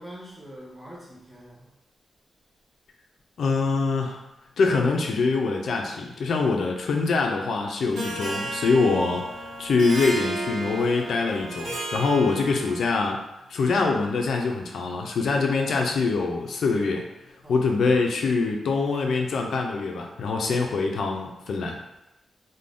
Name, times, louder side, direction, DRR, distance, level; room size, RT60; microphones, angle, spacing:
voice 1, 0.0-1.7 17.4-18.0, equal, 5° right, -5 dB, 0.6 m, -45 dB
voice 2, 3.4-4.2 4.6-13.2 13.5-17.0 17.5-21.8, left 4 dB, 70° left, 2 dB, 0.3 m, -24 dB
Harp, 8.0-13.0, right 2 dB, 75° right, 0.9 m, -33 dB
2.5 x 2.1 x 3.3 m, 0.93 s
wide cardioid pair, 145°, 0 cm